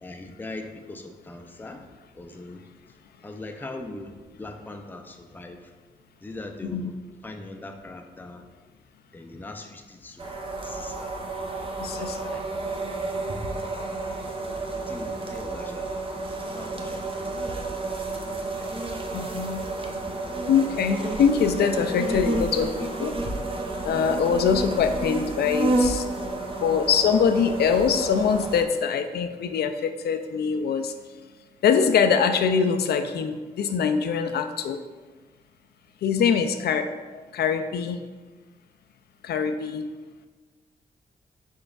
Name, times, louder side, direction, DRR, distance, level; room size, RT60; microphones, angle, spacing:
voice 1, 0.0-1.9 2.1-2.7 3.2-5.6 6.2-6.9 7.2-8.5 9.1-10.3 10.6-11.1 11.9-12.8 14.9-16.0 16.5-17.3 18.6-18.7, left 2 dB, 10° left, 4 dB, 0.4 m, -41 dB
sound 1, 10.2-28.6, right 2 dB, 30° right, 0.6 m, -30 dB
voice 2, 11.8-12.4 19.1-19.7 20.5-23.1 23.8-26.0 26.6-30.9 31.6-34.8 36.0-36.9 37.1-38.0 39.2-39.9, left 6 dB, 70° left, 8 dB, 0.4 m, -23 dB
5.2 x 3.7 x 2.4 m, 1.3 s
supercardioid pair, 55°, 17 cm